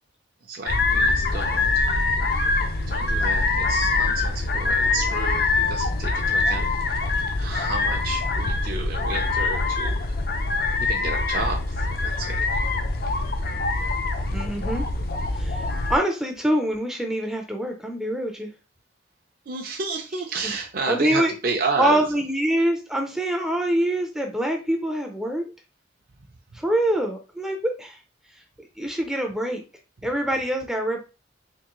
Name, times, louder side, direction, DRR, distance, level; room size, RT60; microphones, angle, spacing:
voice 1, 0.4-1.8 2.3-10.2 10.8-12.6 19.5-22.1, right 4 dB, 50° right, 1 dB, 0.6 m, -32 dB
sound 1, 0.7-16.0, left 3 dB, 50° left, 0.5 m, -24 dB
voice 2, 14.3-14.8 15.3-18.5 20.4-20.5 20.9-21.3 21.8-25.4 26.5-28.0 28.8-29.6 30.0-31.0, right 1 dB, 5° right, 2 dB, 0.4 m, -25 dB
3.7 x 2.9 x 3.0 m, 0.31 s
head